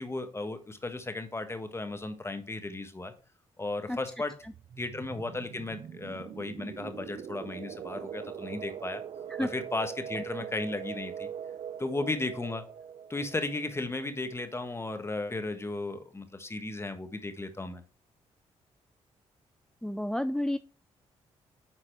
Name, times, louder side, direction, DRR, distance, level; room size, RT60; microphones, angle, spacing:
voice 1, 0.0-3.1 3.6-4.3 4.8-9.0 9.4-11.3 11.8-12.6 13.1-17.8, left 2 dB, 20° left, 8 dB, 1.5 m, -35 dB
sound 1, 4.4-14.9, right 8 dB, 55° right, 0.6 m, -42 dB
voice 2, 19.8-20.6, left 1 dB, 5° left, 13 dB, 0.4 m, -30 dB
10.0 x 4.1 x 4.7 m, 0.37 s
supercardioid pair, 65°, 12 cm